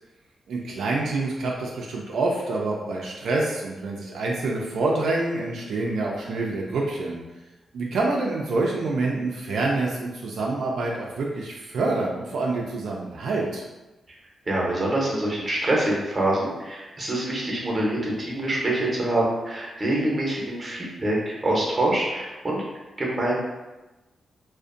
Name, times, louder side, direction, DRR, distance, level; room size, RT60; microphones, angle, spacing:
voice 1, 0.5-7.2 7.7-13.6, right 2 dB, 80° right, -2 dB, 0.3 m, -27 dB
voice 2, 14.5-22.6 23.0-23.3, right 1 dB, 25° right, -4 dB, 0.7 m, -25 dB
2.5 x 2.1 x 2.5 m, 1.1 s
wide cardioid pair, 130°, 0 cm